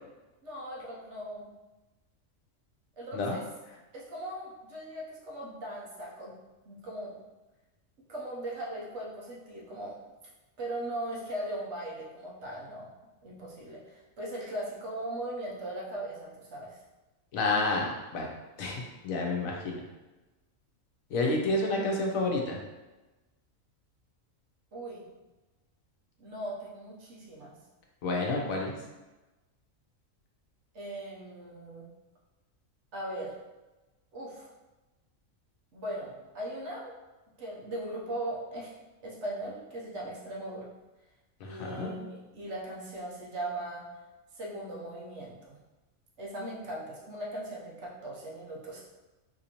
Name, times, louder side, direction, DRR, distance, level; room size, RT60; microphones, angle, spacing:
voice 1, 0.4-1.5 3.0-3.4 3.9-6.3 6.7-7.2 8.1-10.0 10.6-12.9 13.2-16.8 24.7-25.0 26.2-27.5 30.7-31.9 32.9-33.4 34.1-34.5 35.7-36.9 37.4-38.7 39.0-40.7 41.4-43.8 44.3-45.6 46.2-48.9, right 1 dB, 60° right, -4 dB, 1.1 m, -39 dB
voice 2, 17.3-18.3 18.6-19.8 21.1-22.6 28.0-28.7 41.4-41.9, left 2 dB, 85° left, 0 dB, 1.1 m, -29 dB
4.1 x 2.6 x 2.9 m, 1.1 s
omnidirectional pair, 1.4 m